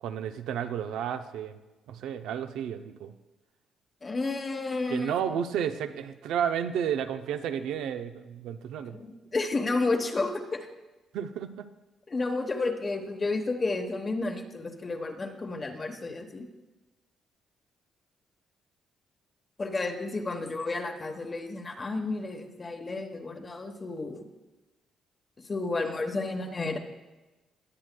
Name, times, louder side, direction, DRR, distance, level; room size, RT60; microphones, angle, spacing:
voice 1, 0.0-1.6 1.9-3.1 4.9-9.0 11.1-11.7, right 8 dB, 85° right, 9 dB, 0.5 m, -32 dB
voice 2, 4.0-5.1 8.8-10.7 12.1-16.5 19.6-24.2 25.5-26.8, left 3 dB, 30° left, 4 dB, 1.0 m, -31 dB
20.0 x 7.7 x 2.2 m, 1.1 s
cardioid pair, 90°, 0 cm